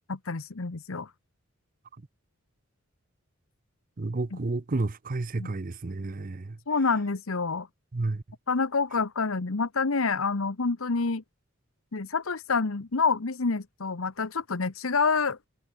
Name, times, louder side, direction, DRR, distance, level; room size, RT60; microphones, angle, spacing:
voice 1, 0.1-1.1 4.3-4.4 5.4-5.5 6.7-7.7 8.5-11.2 11.9-15.4, left 4 dB, 85° left, 1.1 m, -27 dB
voice 2, 4.0-6.6 7.9-8.2, right 2 dB, 40° right, 0.6 m, -31 dB
head